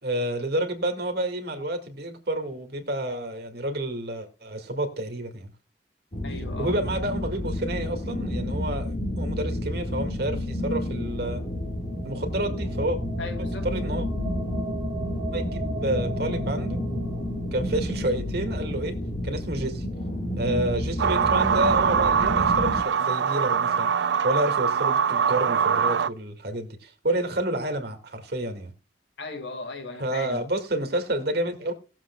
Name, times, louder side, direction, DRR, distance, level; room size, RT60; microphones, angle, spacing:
voice 1, 0.0-5.5 6.6-11.4 12.0-13.0 13.4-14.1 15.3-16.9 17.5-19.0 19.2-19.9 20.4-28.7 30.0-31.7, right 1 dB, 60° right, 2.1 m, -29 dB
sound 1, 6.1-22.8, left 1 dB, 40° left, 1.8 m, -30 dB
voice 2, 6.2-6.8 13.2-13.7 29.2-30.4, left 3 dB, 80° left, 2.0 m, -37 dB
sound 2, 10.0-20.8, right 1 dB, 5° left, 2.8 m, -38 dB
sound 3, 21.0-26.1, right 7 dB, 80° right, 0.4 m, -23 dB
19.0 x 7.4 x 2.3 m
head